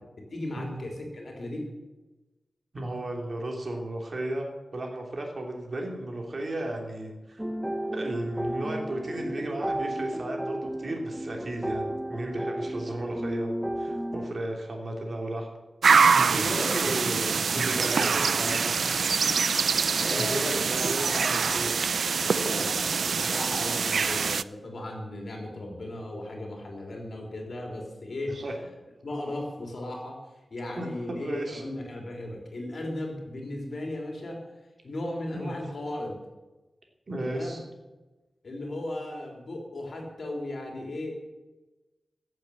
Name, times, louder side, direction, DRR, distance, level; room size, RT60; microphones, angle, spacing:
voice 1, 0.2-1.7 16.3-19.1 20.0-21.5 22.2-28.4 29.0-30.2 30.5-34.4 34.8-36.2 37.2-37.6 38.4-41.1, left 1 dB, 60° left, 1 dB, 3.5 m, -36 dB
voice 2, 2.7-4.5 4.7-7.4 7.9-15.5 16.1-17.2 17.5-18.9 20.2-21.7 28.3-28.5 30.8-31.6 35.3-35.5 37.1-37.6, right 1 dB, 50° right, 1 dB, 3.0 m, -34 dB
sound 1, 7.4-14.3, right 1 dB, 5° right, 0.7 m, -33 dB
sound 2, 15.8-24.4, right 5 dB, 85° right, 0.4 m, -24 dB
15.0 x 7.5 x 8.2 m, 1.1 s
wide cardioid pair, 120°, 0 cm